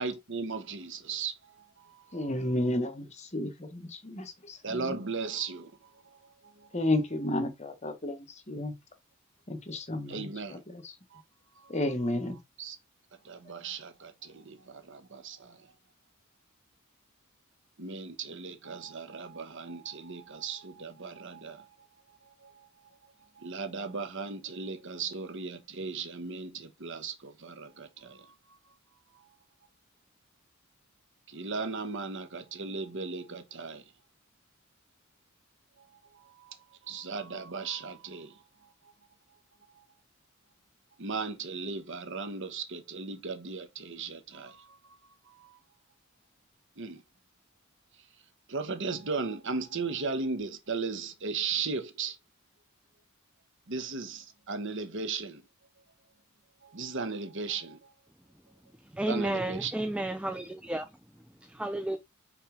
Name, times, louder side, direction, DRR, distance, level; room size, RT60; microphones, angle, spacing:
voice 1, 0.0-2.2 4.6-5.7 6.0-6.2 6.4-6.7 10.1-10.6 11.1-11.2 11.6-11.7 12.6-12.8 13.2-15.6 17.8-21.7 22.4-22.7 23.4-28.3 31.3-33.8 36.4-36.5 36.9-38.4 41.0-44.9 45.4-45.5 46.8-47.0 48.5-52.2 53.7-55.4 56.6-57.8 59.1-59.7, right 4 dB, 65° right, 1.2 m, -36 dB
voice 2, 2.1-5.0 6.7-8.7 9.5-10.9 11.7-12.4, left 1 dB, 35° left, 1.4 m, -32 dB
voice 3, 58.9-60.9 61.5-62.0, right 1 dB, 5° right, 0.5 m, -32 dB
5.7 x 3.4 x 5.1 m
head